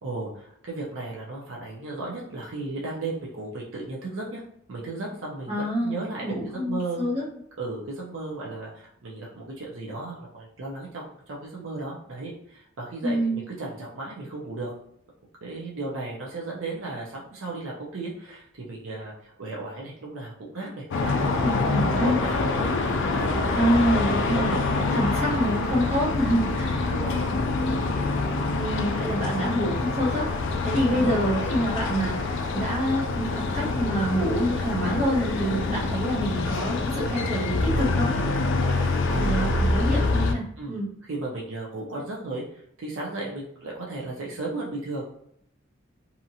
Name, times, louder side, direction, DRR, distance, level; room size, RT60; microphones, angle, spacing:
voice 1, 0.0-4.4 4.7-7.0 7.6-14.7 15.4-23.6 23.9-26.0 26.4-26.6 26.9-27.4 30.9-31.2 38.6-39.5 40.6-40.8 41.1-45.1, right 2 dB, 75° right, -3 dB, 0.6 m, -35 dB
voice 2, 5.5-7.2 13.0-13.4 21.4-22.2 23.5-26.9 28.5-38.1 39.2-40.9, equal, 35° right, -5 dB, 1.0 m, -27 dB
sound 1, 20.9-40.3, left 3 dB, 65° left, 0.4 m, -26 dB
2.8 x 2.5 x 2.7 m, 0.73 s
head